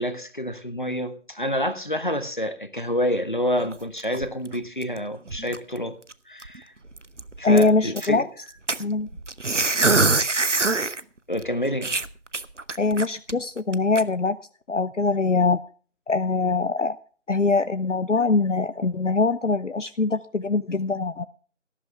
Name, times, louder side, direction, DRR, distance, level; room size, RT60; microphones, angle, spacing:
voice 1, 0.0-6.0 6.3-6.7 7.4-8.3 11.3-12.0, equal, 40° left, 10 dB, 1.4 m, -28 dB
sound 1, 3.6-5.0 5.3-5.8 6.1-6.2 6.4-6.6 7.0-8.1 8.7-11.0 11.4-11.5 11.8-13.3 13.7-14.0, right 3 dB, 70° right, 1.0 m, -24 dB
voice 2, 7.4-8.2 8.8-9.1 12.8-14.4 14.7-15.6 16.1-17.0 17.3-21.3, left 3 dB, 70° left, 13 dB, 0.8 m, -22 dB
18.0 x 11.0 x 3.4 m, 0.42 s
figure-of-eight pair, 175°, 38 cm